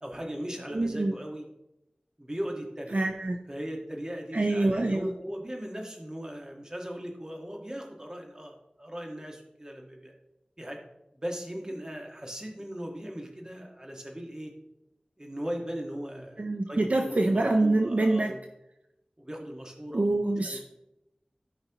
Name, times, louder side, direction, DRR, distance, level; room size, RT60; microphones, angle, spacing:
voice 1, 0.0-1.5 2.2-3.0 3.5-10.1 10.6-10.8 11.1-14.5 15.2-18.4 19.2-20.2 20.4-20.6, equal, 25° right, 1 dB, 1.7 m, -38 dB
voice 2, 0.7-1.1 2.9-3.4 4.3-5.1 16.4-18.3 19.9-20.6, right 2 dB, 60° right, 3 dB, 0.6 m, -25 dB
13.5 x 5.6 x 3.0 m, 0.88 s
wide cardioid pair, 60°, 3 cm